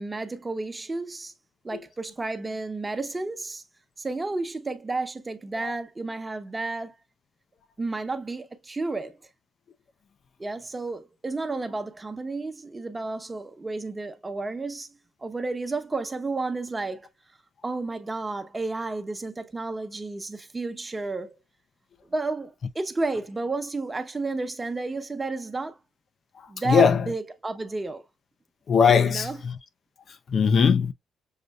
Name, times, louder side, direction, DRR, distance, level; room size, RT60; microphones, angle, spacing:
voice 1, 0.0-1.3 1.6-3.6 4.0-6.9 7.8-9.2 10.4-14.9 15.2-17.1 17.6-21.4 22.1-25.8 26.5-28.0 29.1-29.3, right 3 dB, 20° right, 0.9 m, -32 dB
voice 2, 26.4-27.1 28.7-29.6 30.1-30.9, left 6 dB, 50° left, 0.5 m, -21 dB
6.5 x 2.6 x 2.3 m
cardioid pair, 90°, 0 cm